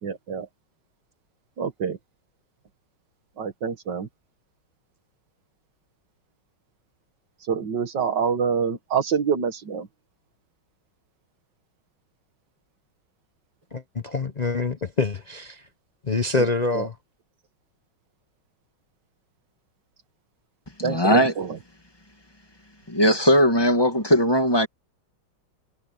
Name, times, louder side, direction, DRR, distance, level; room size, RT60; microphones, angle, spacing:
voice 1, 0.0-0.5 1.6-2.0 3.4-4.1 7.5-9.9 16.7-16.8 20.8-21.5, right 6 dB, 60° right, 2.1 m, -26 dB
voice 2, 13.7-15.7 16.0-17.0, left 3 dB, 65° left, 0.4 m, -26 dB
voice 3, 20.8-21.3 22.9-24.7, equal, 10° left, 2.1 m, -19 dB
omnidirectional pair, 2.3 m